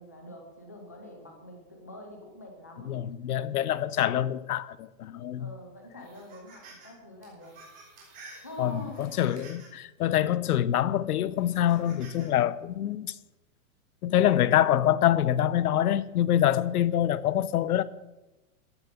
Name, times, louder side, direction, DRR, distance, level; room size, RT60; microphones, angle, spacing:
voice 1, 0.0-3.0 5.4-7.6 8.4-9.1, left 1 dB, 15° left, 0.4 m, -45 dB
voice 2, 2.8-5.5 8.6-13.1 14.0-17.8, left 11 dB, 85° left, 0.8 m, -25 dB
sound 1, 6.0-6.9 7.2-9.8 10.4-10.5 11.4-12.3, right 3 dB, 20° right, 3.5 m, -51 dB
14.5 x 7.6 x 7.1 m
supercardioid pair, 180°, 44 cm